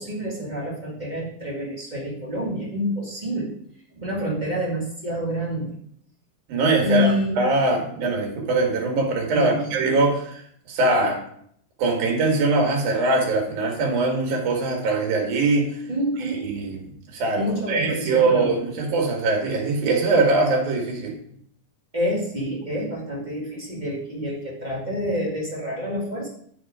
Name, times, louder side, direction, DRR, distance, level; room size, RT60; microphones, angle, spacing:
voice 1, 0.0-3.5 3.9-5.7 6.8-7.5 9.3-9.7 15.9-16.5 17.4-18.6 21.9-26.3, equal, 35° right, -5 dB, 0.6 m, -27 dB
voice 2, 6.5-11.2 11.8-15.8 16.2-16.8 17.1-21.1, right 3 dB, 65° right, 1 dB, 3.0 m, -22 dB
10.0 x 4.2 x 4.7 m, 0.65 s
omnidirectional pair, 4.0 m